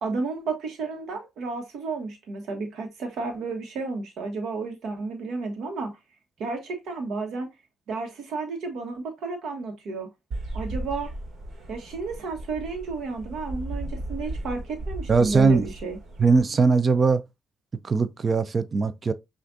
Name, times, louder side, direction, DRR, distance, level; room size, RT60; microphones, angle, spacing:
voice 1, 0.0-6.0 6.4-7.5 7.9-10.1 10.5-11.1 11.7-16.0, right 3 dB, 75° right, 1.2 m, -32 dB
sound 1, 10.3-16.4, right 1 dB, 60° right, 1.4 m, -36 dB
voice 2, 15.1-15.7 16.2-17.2 17.8-19.1, right 4 dB, 35° right, 0.5 m, -20 dB
6.0 x 2.5 x 2.6 m
cardioid pair, 90°, 0 cm